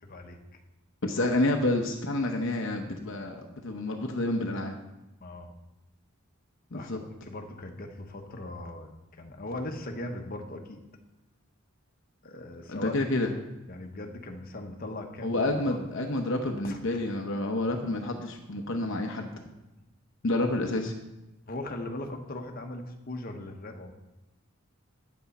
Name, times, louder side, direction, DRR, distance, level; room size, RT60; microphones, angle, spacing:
voice 1, 0.0-0.4 5.2-5.5 6.7-10.8 12.2-12.9 13.7-15.8 16.6-17.0 21.5-23.9, left 1 dB, 45° left, 4 dB, 1.0 m, -39 dB
voice 2, 1.0-4.8 6.7-7.0 12.7-13.3 15.2-19.3 20.2-20.9, left 2 dB, 65° left, 3 dB, 0.9 m, -29 dB
9.4 x 8.1 x 4.2 m, 1.0 s
head